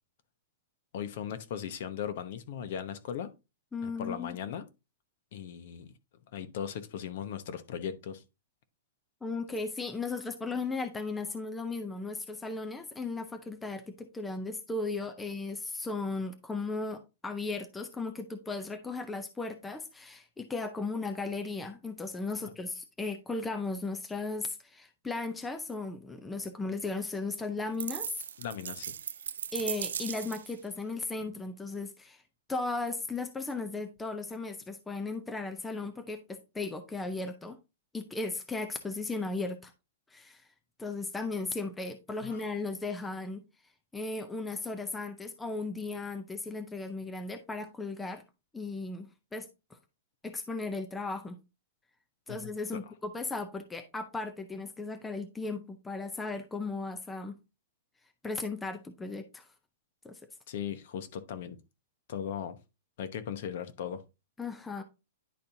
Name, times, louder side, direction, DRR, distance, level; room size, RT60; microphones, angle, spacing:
voice 1, 0.9-3.3 3.8-4.6 5.3-5.9 6.3-8.2 28.4-29.0 42.2-42.4 52.3-52.5 60.5-61.6 62.1-62.6 63.0-64.0, left 8 dB, 50° left, 0.9 m, -38 dB
voice 2, 3.7-4.4 9.2-28.2 29.5-32.2 32.5-37.6 37.9-39.7 40.1-40.5 40.8-43.4 43.9-48.2 48.5-49.8 50.2-51.4 52.3-57.4 58.2-59.5 60.0-60.2 64.4-64.8, left 3 dB, 5° left, 0.5 m, -36 dB
sound 1, 27.8-30.6, right 8 dB, 90° right, 0.3 m, -37 dB
10.5 x 4.2 x 2.6 m
hypercardioid pair, 165°, 0 cm